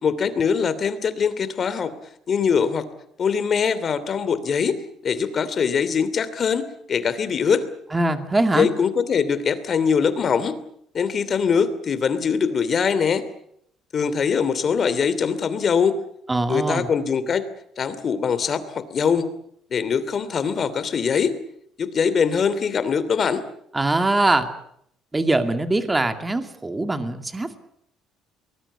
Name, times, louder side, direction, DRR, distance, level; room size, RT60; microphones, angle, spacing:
voice 1, 0.0-1.9 2.3-2.9 3.2-6.6 6.9-7.6 8.5-10.5 10.9-13.2 13.9-16.0 16.5-17.4 17.8-19.3 19.7-21.4 21.8-23.4, left 6 dB, 40° left, 14 dB, 2.8 m, -22 dB
voice 2, 7.9-8.7 16.3-16.9 23.7-24.5 25.1-27.6, right 2 dB, 15° right, 8 dB, 2.4 m, -22 dB
23.5 x 20.5 x 8.4 m, 0.70 s
cardioid pair, 110°, 0 cm